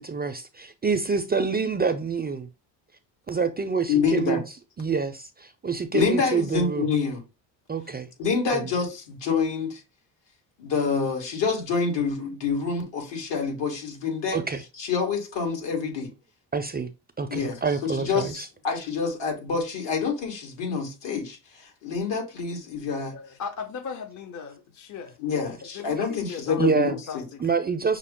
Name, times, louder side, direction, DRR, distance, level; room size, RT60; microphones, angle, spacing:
voice 1, 0.0-2.5 3.3-4.4 4.8-6.8 7.7-8.1 14.3-14.6 16.5-16.9 17.2-18.5 26.6-26.9 27.4-28.0, right 5 dB, 25° right, 0.4 m, -27 dB
voice 2, 3.9-4.4 5.9-7.2 8.2-9.8 10.6-14.4 14.8-16.1 17.3-23.2 25.2-27.3, left 5 dB, 70° left, 1.8 m, -27 dB
voice 3, 23.1-26.7 27.1-27.4, left 6 dB, 40° left, 0.7 m, -38 dB
5.8 x 2.0 x 3.6 m
cardioid pair, 85°, 45 cm